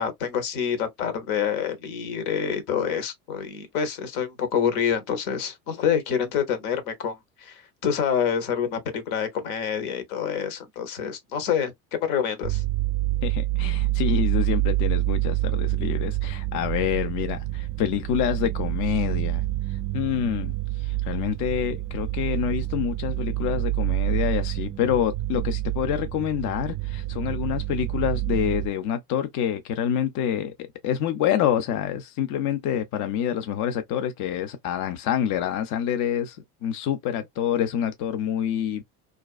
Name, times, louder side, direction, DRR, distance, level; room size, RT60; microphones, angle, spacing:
voice 1, 0.0-12.6, left 8 dB, 70° left, 1.0 m, -27 dB
sound 1, 12.4-28.7, right 17 dB, 40° right, 0.5 m, -27 dB
voice 2, 13.2-19.4 19.9-38.8, left 9 dB, 40° left, 0.5 m, -27 dB
2.4 x 2.3 x 2.3 m
hypercardioid pair, 80°, 46 cm